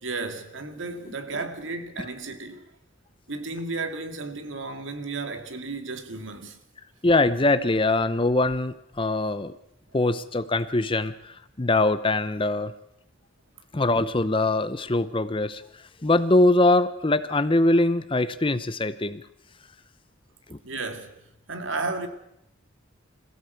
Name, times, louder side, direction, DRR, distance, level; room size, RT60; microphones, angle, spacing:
voice 1, 0.0-2.6 3.3-6.6 20.6-21.2 21.5-22.1, right 3 dB, 70° right, 2.2 m, -33 dB
voice 2, 7.0-9.5 9.9-12.7 13.7-15.6 16.0-19.2 20.5-20.6, left 2 dB, 25° left, 0.7 m, -22 dB
21.5 x 15.5 x 8.1 m
head